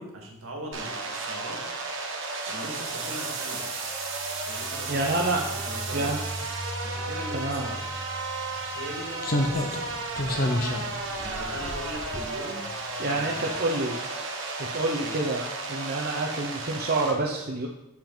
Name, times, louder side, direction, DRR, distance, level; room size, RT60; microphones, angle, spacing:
voice 1, 0.0-1.6 2.5-3.7 4.5-6.2 6.8-7.9 8.7-9.9 10.2-10.5 11.2-12.7 13.1-14.0 15.0-15.2, right 1 dB, 80° right, 0 dB, 1.9 m, -40 dB
sound 1, 0.7-17.1, right 3 dB, 60° right, 1.6 m, -34 dB
sound 2, 3.8-9.4, right 1 dB, 15° left, 2.2 m, -40 dB
voice 2, 4.9-5.4 5.9-6.2 7.3-7.7 13.0-14.0 14.6-15.4 15.7-17.7, right 2 dB, 45° right, -1 dB, 0.8 m, -28 dB
Slam, 7.8-7.9 9.2-12.7 13.0-13.2, left 1 dB, 45° left, 0.9 m, -30 dB
7.3 x 7.3 x 3.9 m, 0.89 s
head